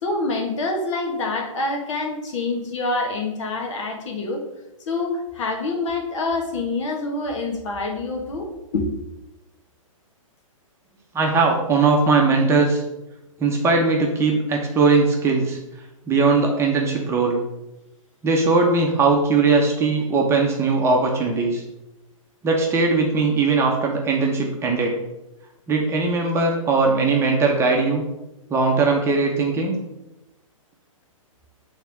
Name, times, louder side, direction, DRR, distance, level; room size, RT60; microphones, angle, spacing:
voice 1, 0.0-4.4 4.9-8.9, left 2 dB, 60° left, 2 dB, 1.6 m, -26 dB
voice 2, 11.1-12.8 13.4-15.6 16.1-17.4 18.2-21.6 22.4-25.0 25.7-28.0 28.5-29.8, right 4 dB, 15° right, 0 dB, 0.9 m, -19 dB
8.0 x 3.6 x 3.5 m, 0.94 s
hypercardioid pair, 135°, 18 cm